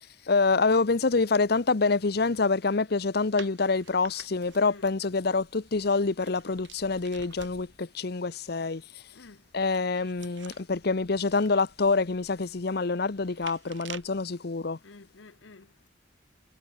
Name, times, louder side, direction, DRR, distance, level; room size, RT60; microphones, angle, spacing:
voice 1, 0.3-8.8 9.5-14.8, left 4 dB, 55° left, 0.8 m, -26 dB
sound 1, 3.4-7.9 9.3-14.2, right 7 dB, 75° right, 4.3 m, -50 dB
voice 2, 9.1-9.4 14.8-15.9, left 3 dB, 80° left, 1.0 m, -50 dB
head